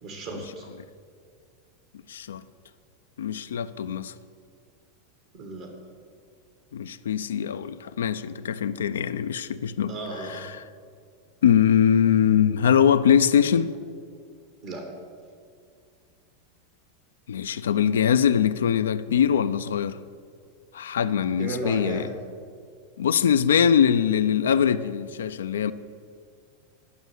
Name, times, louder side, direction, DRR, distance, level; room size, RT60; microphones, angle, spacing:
voice 1, 0.0-0.7 5.3-5.7 9.9-10.5 14.6-14.9 21.4-22.1, right 2 dB, 60° right, 1.9 m, -34 dB
voice 2, 2.1-2.4 3.2-4.1 6.7-9.9 10.2-10.6 11.4-13.7 17.3-20.0 20.7-22.1 23.0-25.7, left 8 dB, 85° left, 0.4 m, -22 dB
11.0 x 5.5 x 8.0 m
hypercardioid pair, 100°, 0 cm